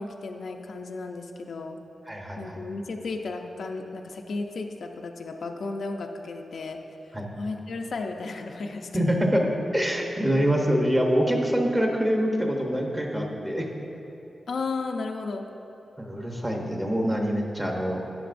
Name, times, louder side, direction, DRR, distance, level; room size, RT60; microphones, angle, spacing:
voice 1, 0.0-1.8 2.4-6.8 7.4-9.0 14.5-15.5, left 3 dB, 65° left, 3 dB, 0.5 m, -34 dB
voice 2, 2.1-2.6 7.1-7.3 8.9-9.5 9.7-13.7 16.0-18.0, equal, 10° right, 0 dB, 0.9 m, -25 dB
12.0 x 9.3 x 2.6 m, 2.9 s
wide cardioid pair, 175°, 0 cm